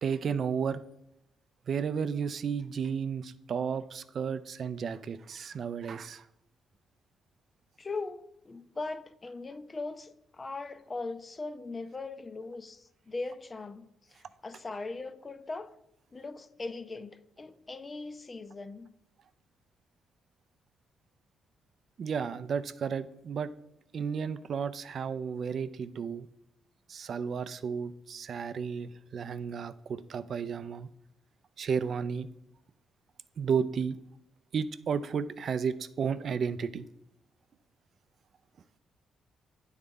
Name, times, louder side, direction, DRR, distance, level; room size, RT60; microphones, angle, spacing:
voice 1, 0.0-0.8 1.7-6.2 22.0-23.5 23.9-26.3 26.9-30.9 31.6-32.3 33.4-34.0 34.5-36.9, right 6 dB, 55° right, 0.4 m, -33 dB
voice 2, 7.8-15.7 16.1-18.9, left 3 dB, 30° left, 0.4 m, -40 dB
9.5 x 3.9 x 3.6 m
cardioid pair, 90°, 0 cm